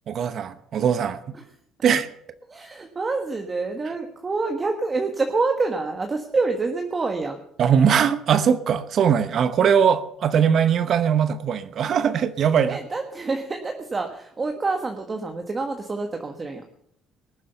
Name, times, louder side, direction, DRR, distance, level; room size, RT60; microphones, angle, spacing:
voice 1, 0.1-1.2 1.8-2.1 7.6-12.8, right 7 dB, 55° right, 13 dB, 0.9 m, -20 dB
voice 2, 2.5-7.4 12.6-16.6, right 3 dB, 25° right, 4 dB, 1.4 m, -27 dB
20.0 x 7.4 x 6.9 m, 0.71 s
cardioid pair, 95°, 0 cm